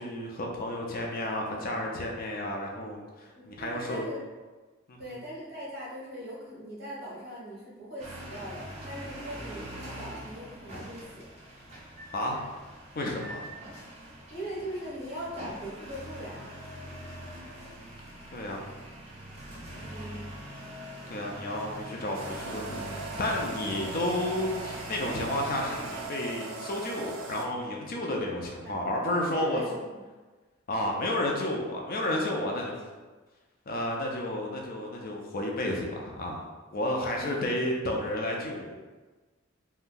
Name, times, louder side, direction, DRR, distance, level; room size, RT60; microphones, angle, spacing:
voice 1, 0.0-4.1 4.9-5.0 12.1-12.4 13.0-13.4 17.2-17.8 18.3-18.6 21.1-29.6 30.7-32.9 33.7-38.7, left 1 dB, 45° left, 0 dB, 0.4 m, -32 dB
voice 2, 3.3-4.2 5.0-11.3 14.3-16.5 19.8-20.3 28.3-28.4 28.6-28.8 29.0-29.9 36.9-37.5, equal, 50° right, -7 dB, 1.1 m, -40 dB
sound 1, 8.0-26.1, right 1 dB, 35° right, 0.7 m, -43 dB
sound 2, 22.1-27.4, right 3 dB, 80° right, 0.4 m, -39 dB
2.6 x 2.2 x 3.7 m, 1.3 s
head